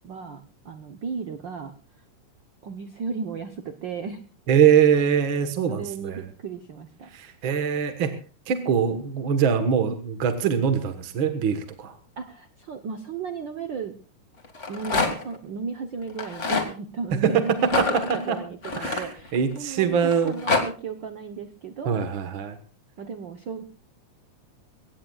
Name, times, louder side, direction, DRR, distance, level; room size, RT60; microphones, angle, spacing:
voice 1, 0.0-1.7 2.6-4.2 5.7-7.1 12.2-13.9 14.7-17.6 18.1-22.0 23.0-23.6, right 5 dB, 90° right, 7 dB, 1.0 m, -35 dB
voice 2, 4.5-6.2 7.1-8.1 8.5-11.9 17.1-17.4 17.8-17.9 18.3-18.4 18.8-19.0 19.3-20.3 21.9-22.6, right 7 dB, 50° right, 7 dB, 1.7 m, -22 dB
Rattle, 14.4-15.4 16.1-16.7 17.6-19.6 20.1-20.6, left 4 dB, 25° left, 1.8 m, -26 dB
22.5 x 17.5 x 2.4 m, 0.37 s
omnidirectional pair, 3.6 m